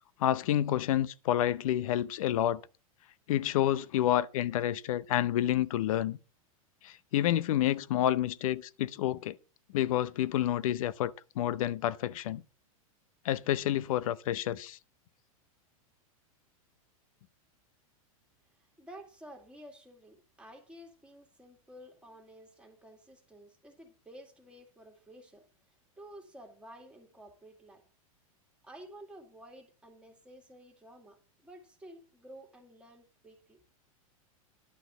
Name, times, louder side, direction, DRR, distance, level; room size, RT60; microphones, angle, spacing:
voice 1, 0.2-2.6 3.3-6.2 6.8-9.4 9.7-12.4 13.2-14.8, left 12 dB, 70° left, 0.6 m, -29 dB
voice 2, 18.8-25.4 26.0-27.8 28.6-31.2 31.4-33.6, right 1 dB, 5° right, 2.1 m, -52 dB
11.5 x 4.1 x 7.9 m
supercardioid pair, 135°, 18 cm